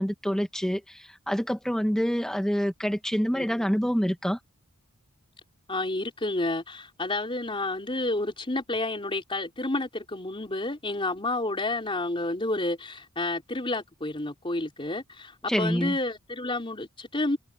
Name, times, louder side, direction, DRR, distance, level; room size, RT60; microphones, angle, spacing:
voice 1, 0.0-4.4 15.5-16.0, equal, 5° left, 1.3 m, -27 dB
voice 2, 3.3-3.7 5.7-17.4, left 2 dB, 25° left, 4.0 m, -30 dB
head